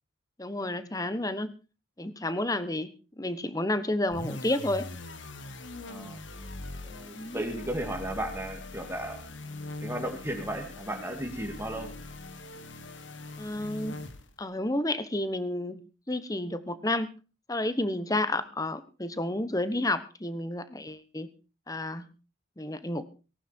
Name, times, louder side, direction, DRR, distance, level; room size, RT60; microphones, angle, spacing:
voice 1, 0.4-1.5 2.0-2.9 3.2-4.8 7.1-7.4 13.4-14.0 14.4-17.1 17.5-21.3 21.7-22.1 22.6-23.1, left 1 dB, 20° left, 13 dB, 1.1 m, -31 dB
sound 1, 4.1-14.5, left 2 dB, 75° left, 1.8 m, -42 dB
voice 2, 5.9-6.2 6.8-9.2 9.8-12.0, right 1 dB, 10° right, 3 dB, 2.7 m, -35 dB
19.0 x 11.5 x 4.5 m, 0.34 s
head